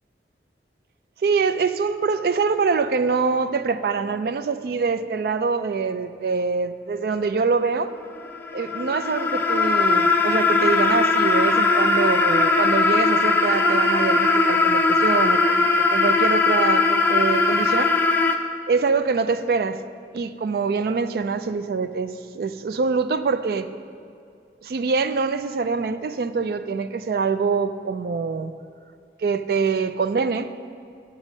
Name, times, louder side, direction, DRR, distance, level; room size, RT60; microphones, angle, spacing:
voice 1, 1.2-7.9 8.5-17.9 18.7-19.8 20.1-23.7 24.6-28.5 29.2-30.5, right 5 dB, 55° right, 11 dB, 0.3 m, -24 dB
sound 1, 8.2-18.4, left 3 dB, 10° left, 0.4 m, -19 dB
9.1 x 7.1 x 5.3 m, 2.3 s
head